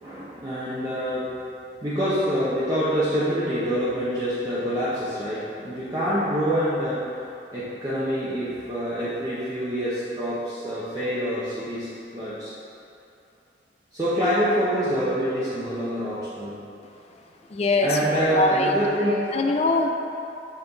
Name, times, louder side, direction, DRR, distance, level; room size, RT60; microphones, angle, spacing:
voice 1, 0.0-1.3 1.8-7.1 7.5-11.9 12.1-12.5 13.9-16.6 17.8-19.4, equal, 20° right, -11 dB, 0.8 m, -26 dB
voice 2, 17.5-18.7 19.3-19.9, left 2 dB, 35° left, 3 dB, 0.4 m, -22 dB
5.7 x 4.4 x 3.9 m, 2.8 s
head